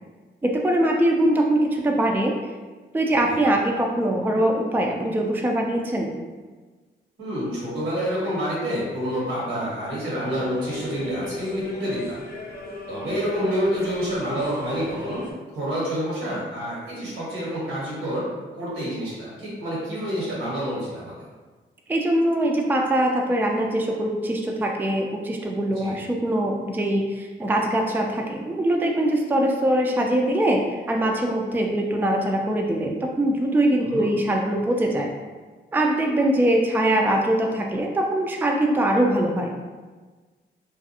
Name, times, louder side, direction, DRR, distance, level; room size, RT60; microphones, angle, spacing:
voice 1, 0.4-2.3 2.9-6.1 21.9-32.9 33.2-35.1 35.7-39.5, right 1 dB, 10° right, 1 dB, 0.4 m, -22 dB
voice 2, 7.2-12.2 12.9-15.2 15.5-18.2 18.5-21.3 25.7-26.0 33.8-34.0, equal, 85° right, -7 dB, 1.2 m, -28 dB
sound 1, 10.3-15.3, left 2 dB, 40° left, 0.8 m, -36 dB
2.5 x 2.3 x 2.7 m, 1.3 s
supercardioid pair, 50°, 21 cm